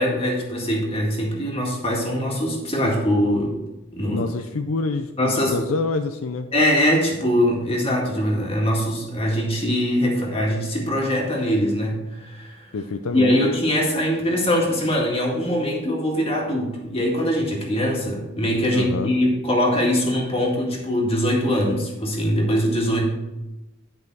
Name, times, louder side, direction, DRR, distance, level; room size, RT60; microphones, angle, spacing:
voice 1, 0.0-3.6 3.9-4.3 5.2-5.7 6.5-12.7 13.1-23.0, equal, 25° left, -1 dB, 1.9 m, -22 dB
voice 2, 4.1-6.5 12.7-13.4 18.7-19.1, left 3 dB, 75° left, 7 dB, 0.5 m, -27 dB
10.5 x 5.5 x 4.7 m, 0.99 s
head